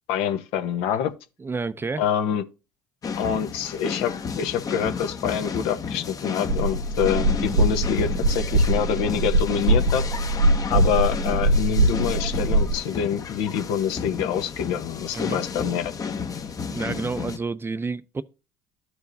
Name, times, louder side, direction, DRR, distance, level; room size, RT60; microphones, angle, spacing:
voice 1, 0.1-1.1 2.0-2.4 3.2-10.0 10.7-15.9, left 8 dB, 70° left, 1.0 m, -26 dB
voice 2, 1.4-2.0 15.1-15.4 16.7-18.2, right 4 dB, 25° right, 0.6 m, -29 dB
sound 1, 3.0-17.4, left 6 dB, 35° left, 1.0 m, -32 dB
sound 2, 6.5-12.7, right 2 dB, 90° right, 0.9 m, -22 dB
13.5 x 4.8 x 2.7 m
hypercardioid pair, 65°, 10 cm